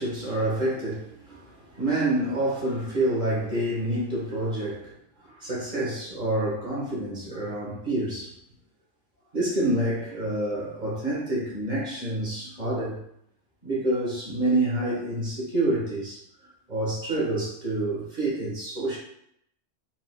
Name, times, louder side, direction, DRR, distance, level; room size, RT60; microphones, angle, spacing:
voice 1, 0.0-4.9 5.4-8.3 9.3-13.0 13.6-16.2 16.7-19.0, right 1 dB, 40° right, -6 dB, 1.6 m, -27 dB
4.5 x 3.9 x 2.3 m, 0.73 s
omnidirectional pair, 1.3 m